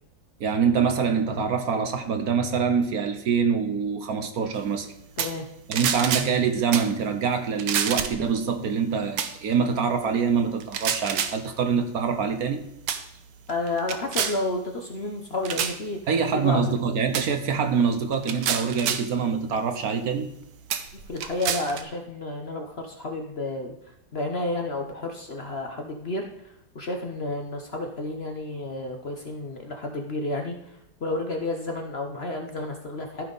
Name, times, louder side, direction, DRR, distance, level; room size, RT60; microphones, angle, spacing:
voice 1, 0.4-4.9 5.7-12.6 16.1-20.3, right 6 dB, 65° right, 7 dB, 1.2 m, -25 dB
sound 1, 5.2-5.4 5.7-6.3 6.7-6.9 7.6-8.3 9.2-9.3 10.6-11.4 12.2-12.5 12.9-13.0 13.5-14.4 15.4-15.8 17.1-17.3 18.1-19.1 19.9-20.0 20.7-21.8, right 8 dB, 80° right, 1.4 m, -28 dB
voice 2, 13.5-16.0 16.3-16.6 20.9-26.3 26.7-33.3, left 2 dB, 45° left, 3 dB, 1.0 m, -31 dB
14.0 x 5.6 x 4.0 m, 0.82 s
omnidirectional pair, 1.9 m